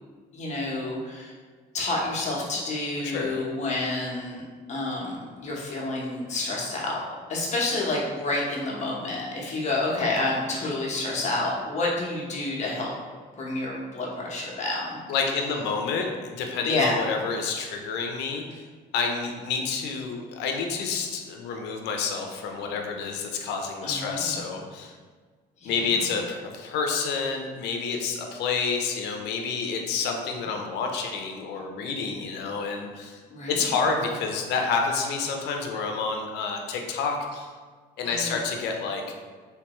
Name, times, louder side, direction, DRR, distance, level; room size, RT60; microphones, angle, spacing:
voice 1, 0.3-1.3 1.7-4.4 4.7-7.0 7.3-12.9 13.4-15.0 16.6-17.0 23.8-24.2 25.6-25.8 33.3-33.5 38.0-38.3, left 2 dB, 45° left, -3 dB, 1.0 m, -29 dB
voice 2, 3.0-3.4 15.1-18.7 18.9-24.9 25.6-33.2 33.5-37.5 38.0-39.0, left 5 dB, 85° left, 2 dB, 0.5 m, -29 dB
3.3 x 3.1 x 3.0 m, 1.5 s
cardioid pair, 110°, 17 cm